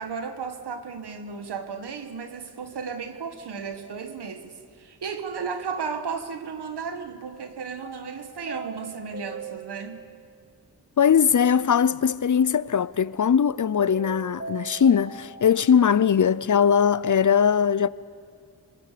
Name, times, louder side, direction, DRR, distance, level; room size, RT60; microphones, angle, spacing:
voice 1, 0.0-10.1, right 5 dB, 90° right, 1.7 m, -34 dB
sound 1, 7.8-10.2 13.8-15.8, right 4 dB, 35° right, 4.1 m, -40 dB
voice 2, 11.0-17.9, left 7 dB, 50° left, 0.7 m, -20 dB
27.0 x 25.5 x 6.9 m
cardioid pair, 50°, 39 cm